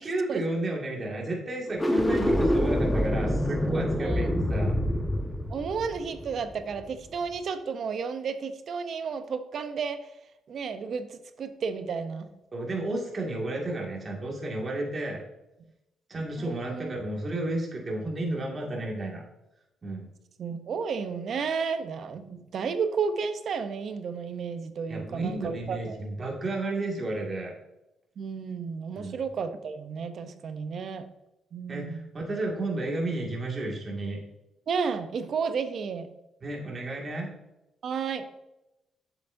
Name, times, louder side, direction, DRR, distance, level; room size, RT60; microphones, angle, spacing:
voice 1, 0.0-4.7 12.5-15.2 16.1-19.2 19.8-20.0 24.9-27.5 29.0-29.2 31.7-34.2 36.4-37.3, right 2 dB, 35° right, -1 dB, 2.0 m, -32 dB
sound 1, 1.7-7.0, equal, 15° left, 1.0 m, -26 dB
voice 2, 5.5-10.0 10.5-12.3 16.4-16.9 20.4-26.0 28.2-31.1 31.5-32.1 34.7-36.1 37.8-38.4, right 5 dB, 60° right, 9 dB, 0.7 m, -32 dB
7.9 x 7.1 x 2.6 m, 0.90 s
cardioid pair, 90°, 0 cm